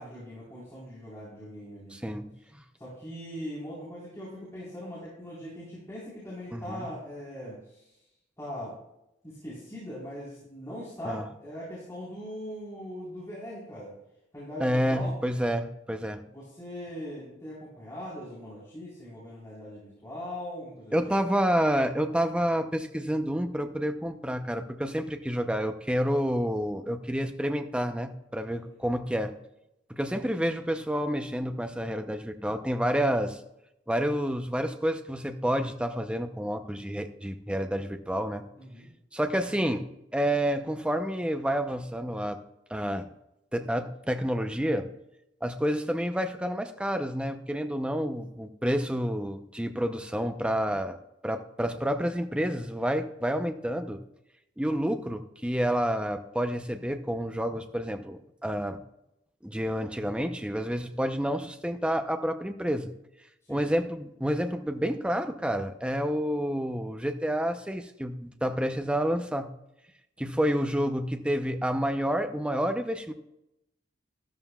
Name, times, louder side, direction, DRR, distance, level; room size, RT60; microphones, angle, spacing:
voice 1, 0.0-2.2 2.8-8.0 8.4-8.7 9.2-13.9 14.3-15.1 16.3-21.1 28.5-28.6 38.6-38.9 63.5-63.7, equal, 15° left, -9 dB, 4.0 m, -40 dB
voice 2, 1.9-2.3 6.5-6.9 11.0-11.3 14.6-16.2 20.9-29.3 29.9-33.4 33.9-38.4 39.1-39.9 40.1-42.4 42.7-43.1 43.5-44.9 45.4-51.0 51.2-54.0 54.6-58.8 59.4-62.9 63.5-69.5 70.2-73.1, equal, 5° right, 7 dB, 0.6 m, -29 dB
13.0 x 13.0 x 2.3 m, 0.86 s
head